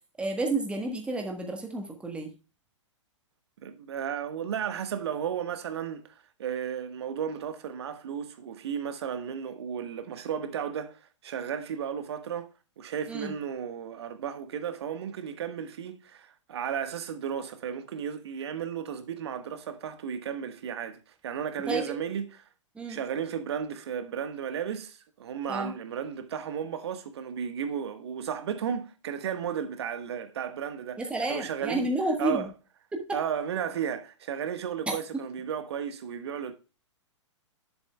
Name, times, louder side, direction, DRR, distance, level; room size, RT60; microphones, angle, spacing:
voice 1, 0.2-2.3 13.1-13.3 21.7-22.0 22.7-23.0 25.5-25.7 31.0-32.5 32.9-33.0, right 2 dB, 5° right, 1.4 m, -30 dB
voice 2, 3.6-6.0 6.4-12.5 12.8-22.4 22.9-31.0 31.3-31.9 32.2-32.5 33.1-36.5, right 8 dB, 55° right, 1.4 m, -34 dB
10.5 x 7.7 x 2.3 m
figure-of-eight pair, 115°, 16 cm